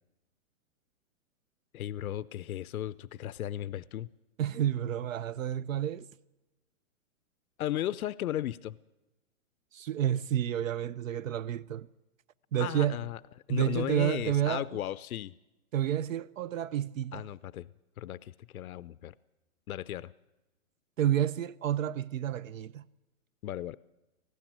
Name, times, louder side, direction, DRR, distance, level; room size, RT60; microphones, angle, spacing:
voice 1, 1.7-4.1 7.6-8.8 12.6-13.2 13.5-15.3 17.1-17.7 18.0-19.1 19.7-20.1 23.4-23.8, left 12 dB, 90° left, 0.7 m, -35 dB
voice 2, 4.4-6.1 9.7-11.9 12.5-13.0 13.5-14.7 15.7-17.3 21.0-22.9, right 10 dB, 70° right, 0.7 m, -30 dB
19.0 x 15.5 x 9.0 m
hypercardioid pair, 170°, 41 cm